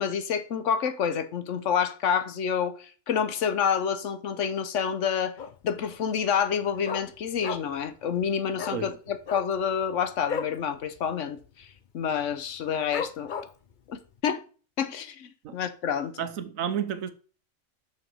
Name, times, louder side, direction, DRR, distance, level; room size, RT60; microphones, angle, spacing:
voice 1, 0.0-5.4 5.6-11.7 11.9-13.3 13.9-14.4 14.8-16.2, left 7 dB, 70° left, 1.1 m, -28 dB
Dog, 5.4-5.8 6.1-6.2 6.5-7.9 8.2-8.3 8.5-8.8 9.2-10.6 11.0-11.1 11.4-11.8 12.2-12.3 12.9-13.7 14.2-14.3, left 6 dB, 45° left, 0.7 m, -34 dB
voice 2, 16.2-17.1, right 8 dB, 85° right, 1.2 m, -31 dB
6.4 x 5.6 x 5.4 m
omnidirectional pair, 1.4 m